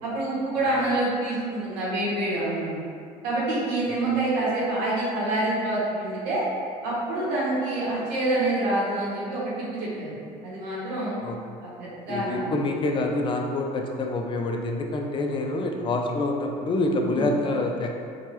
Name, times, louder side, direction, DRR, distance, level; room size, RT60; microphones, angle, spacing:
voice 1, 0.0-2.8 3.2-6.4 6.8-10.2 10.4-11.2 11.6-12.6 17.1-17.3, right 2 dB, 85° right, -7 dB, 0.9 m, -27 dB
voice 2, 12.1-17.9, left 2 dB, 30° left, 2 dB, 0.4 m, -26 dB
2.9 x 2.2 x 3.0 m, 2.3 s
supercardioid pair, 90°, 17 cm